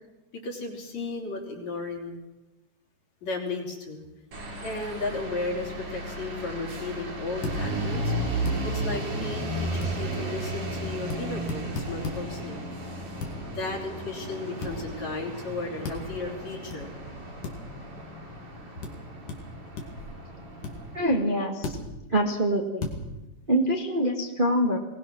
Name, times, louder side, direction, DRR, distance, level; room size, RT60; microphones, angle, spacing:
voice 1, 0.3-2.2 3.2-4.0 4.6-8.1 8.6-12.6 13.5-16.9, left 3 dB, 55° left, 0 dB, 4.7 m, -34 dB
sound 1, 4.3-21.3, right 1 dB, 65° right, 6.4 m, -34 dB
sound 2, 7.4-7.6 8.5-8.6 9.8-10.0 11.1-11.2 11.5-12.2 13.2-13.4 14.6-14.8 15.8-16.0 16.7-16.8 17.4-17.6 18.8-18.9 19.3-19.4 19.8-20.1 20.6-20.7 21.6-21.8 22.8-23.0, left 3 dB, 75° left, 4.0 m, -33 dB
voice 2, 20.9-21.8 22.1-22.9 23.5-24.8, equal, 20° right, 1 dB, 1.4 m, -25 dB
23.0 x 19.0 x 6.3 m, 1.0 s
omnidirectional pair, 3.7 m